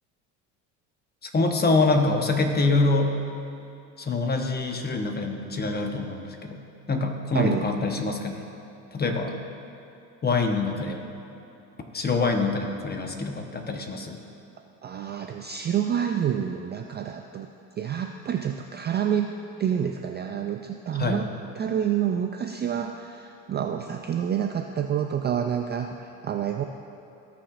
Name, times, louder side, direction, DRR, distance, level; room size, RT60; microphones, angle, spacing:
voice 1, 1.2-3.2 4.0-6.6 6.9-8.4 8.9-9.3 10.2-11.0 11.9-14.2 21.0-21.3, left 3 dB, 25° left, 3 dB, 1.0 m, -25 dB
voice 2, 7.3-7.7 14.8-17.5 17.8-19.3 19.6-21.3 21.6-26.6, right 9 dB, 25° right, 5 dB, 0.3 m, -28 dB
17.0 x 5.9 x 2.5 m, 2.8 s
supercardioid pair, 90°, 41 cm